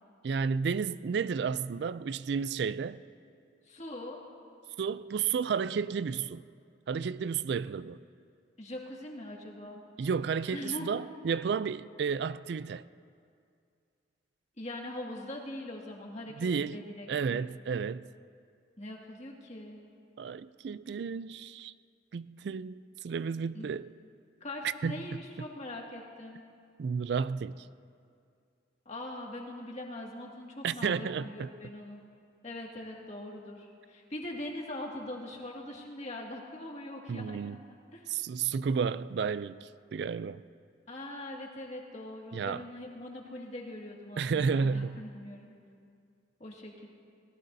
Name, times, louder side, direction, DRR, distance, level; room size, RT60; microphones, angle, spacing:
voice 1, 0.2-3.0 4.8-6.4 6.9-8.0 10.0-12.8 16.4-16.8 17.1-18.1 20.2-21.7 22.1-23.9 24.8-25.2 26.8-27.7 30.6-31.5 37.1-37.6 38.1-40.4 42.3-42.6 44.2-45.0, right 6 dB, 60° right, 0.3 m, -32 dB
voice 2, 3.7-4.2 8.6-9.8 10.5-10.9 14.6-17.4 18.8-19.8 23.5-23.7 24.4-26.4 28.9-32.0 32.4-37.6 37.9-38.2 40.9-45.5 46.4-46.9, left 1 dB, 35° left, 2.0 m, -42 dB
29.0 x 18.5 x 2.7 m
head